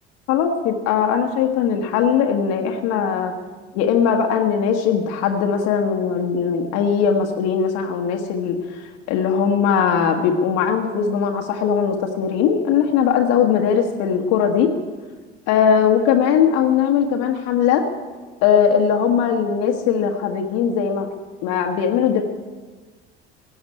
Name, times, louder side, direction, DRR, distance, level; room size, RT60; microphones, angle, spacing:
voice 1, 0.3-3.4 3.7-14.7 15.5-17.9 18.4-21.1 21.4-22.2, left 7 dB, 55° left, 3 dB, 1.3 m, -19 dB
16.5 x 7.9 x 9.6 m, 1.4 s
figure-of-eight pair, 55°, 30 cm